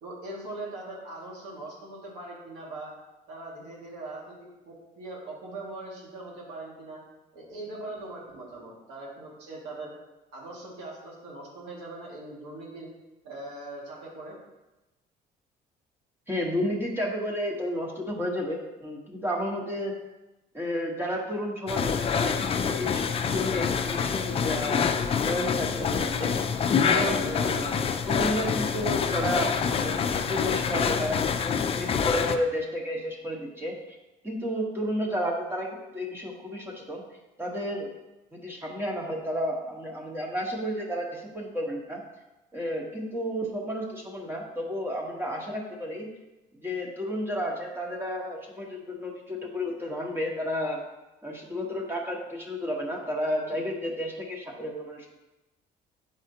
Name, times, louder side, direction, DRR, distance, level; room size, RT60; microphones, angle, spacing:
voice 1, 0.0-2.9 3.3-7.0 7.3-9.9 10.3-12.9 13.2-14.4, right 2 dB, 90° right, -4 dB, 2.0 m, -41 dB
voice 2, 16.3-19.9 20.5-24.8 25.2-26.3 26.8-33.8 34.2-37.0 37.4-37.9 38.3-42.0 42.5-46.1 46.6-50.8 51.2-55.1, equal, 15° right, -1 dB, 1.1 m, -32 dB
sound 1, 21.7-32.4, left 6 dB, 35° left, 0.5 m, -26 dB
8.1 x 4.9 x 2.8 m, 1.0 s
cardioid pair, 110°, 17 cm